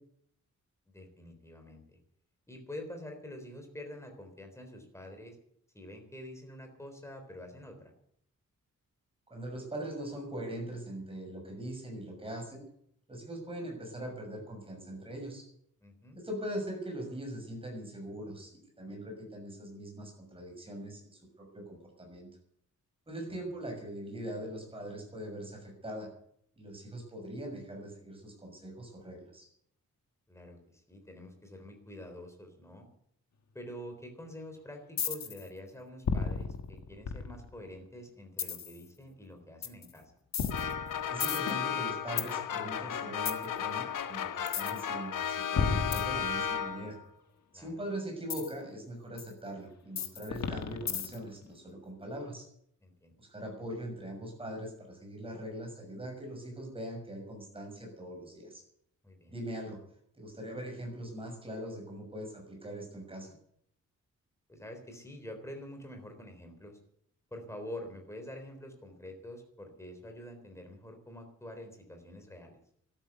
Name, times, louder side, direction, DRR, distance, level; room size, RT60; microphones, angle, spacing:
voice 1, 0.9-2.0 2.5-5.4 5.7-7.9 15.8-16.2 23.3-23.4 30.3-32.9 33.5-40.1 47.5-47.7 52.8-53.1 59.0-59.4 64.5-66.8 67.3-72.6, left 1 dB, 10° left, 4 dB, 3.7 m, -46 dB
voice 2, 9.3-12.6 13.1-15.4 16.1-22.3 23.1-26.1 26.6-29.5 41.1-47.0 47.5-52.5 53.2-58.6 59.3-59.8 60.2-63.3, right 1 dB, 15° right, 1 dB, 6.6 m, -41 dB
sound 1, 35.0-35.5 36.1-37.6 38.4-38.8 39.6-39.9 40.3-42.3 43.3-43.5 44.5-44.8 45.6-46.7 48.3-48.5 49.2-49.3 50.0-51.3, left 5 dB, 60° left, 1.6 m, -33 dB
sound 2, 40.5-47.0, left 8 dB, 85° left, 1.1 m, -34 dB
13.0 x 12.5 x 8.2 m, 0.68 s
wide cardioid pair, 165°, 31 cm